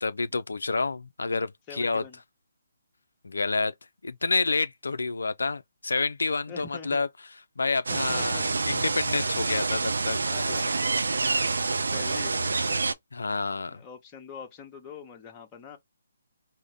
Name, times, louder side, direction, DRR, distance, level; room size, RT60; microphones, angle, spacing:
voice 1, 0.0-2.0 3.2-3.7 4.0-7.1 7.6-10.2 10.5-10.6 13.1-13.8, left 3 dB, 80° left, 0.3 m, -28 dB
voice 2, 1.7-2.2 6.5-7.0 7.9-8.4 9.5-9.7 10.3-10.9 11.9-12.9 13.7-15.8, left 5 dB, 20° left, 0.9 m, -44 dB
sound 1, 7.9-12.9, right 3 dB, 80° right, 0.4 m, -27 dB
3.8 x 2.0 x 3.2 m
hypercardioid pair, 150°, 0 cm